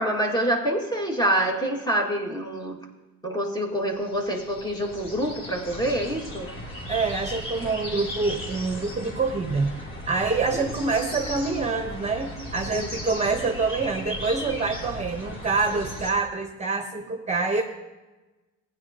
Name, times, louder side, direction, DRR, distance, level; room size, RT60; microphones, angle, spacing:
voice 1, 0.0-2.9 3.2-6.5 10.5-10.7 12.7-12.9, right 1 dB, 15° left, 1 dB, 2.0 m, -26 dB
sound 1, 3.9-16.1, equal, 40° left, 3.1 m, -36 dB
voice 2, 6.9-9.7 10.1-17.6, right 4 dB, 25° right, 4 dB, 1.0 m, -26 dB
15.5 x 10.0 x 2.9 m, 1.1 s
cardioid pair, 90°, 30 cm